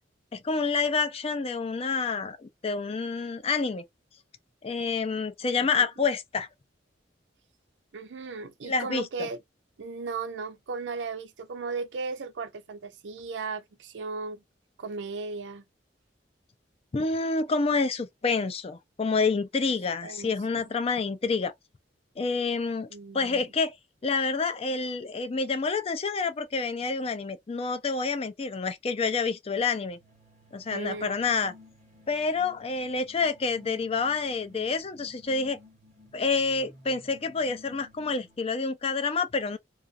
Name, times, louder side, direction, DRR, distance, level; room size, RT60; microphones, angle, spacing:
voice 1, 0.3-3.8 4.6-6.5 8.6-9.3 16.9-21.5 22.2-22.9 23.1-23.8 24.0-30.0 30.5-31.5 32.1-35.6 36.1-39.6, left 4 dB, 35° left, 0.4 m, -28 dB
voice 2, 7.9-9.4 9.8-14.4 14.8-15.6 20.0-20.6 22.9-23.4 30.7-31.1, right 4 dB, 75° right, 0.5 m, -36 dB
sound 1, 29.9-38.5, left 2 dB, 40° right, 1.1 m, -54 dB
2.4 x 2.4 x 2.5 m
head